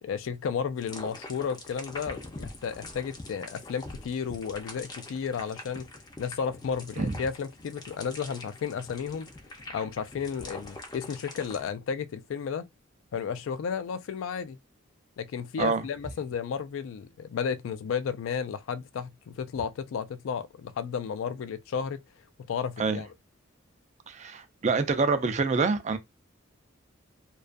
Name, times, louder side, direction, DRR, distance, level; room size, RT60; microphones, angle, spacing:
voice 1, 0.0-5.9 6.2-9.3 9.7-12.7 13.1-14.6 15.2-22.0 22.5-23.1, left 6 dB, 80° left, 0.3 m, -33 dB
sound 1, 0.8-11.7, left 2 dB, 20° left, 0.5 m, -44 dB
voice 2, 24.1-26.0, right 4 dB, 35° right, 0.4 m, -26 dB
2.3 x 2.2 x 2.5 m
head